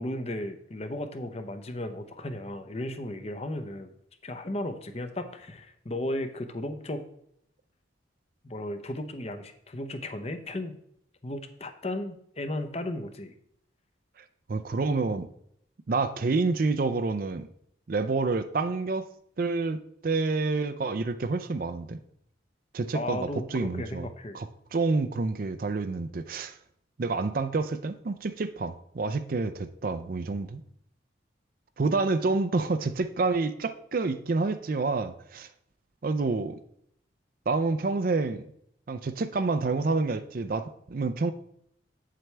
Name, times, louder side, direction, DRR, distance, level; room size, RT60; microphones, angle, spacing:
voice 1, 0.0-3.9 4.2-7.0 8.4-10.8 11.2-13.3 22.9-24.4, left 1 dB, 30° left, 0.7 m, -35 dB
voice 2, 14.5-15.3 15.9-17.5 17.9-19.1 19.4-22.0 22.7-24.1 24.3-26.6 27.0-30.6 31.8-35.5 36.0-36.6 37.5-38.4 38.9-41.3, right 3 dB, 45° right, 0.4 m, -28 dB
8.4 x 7.5 x 3.3 m
head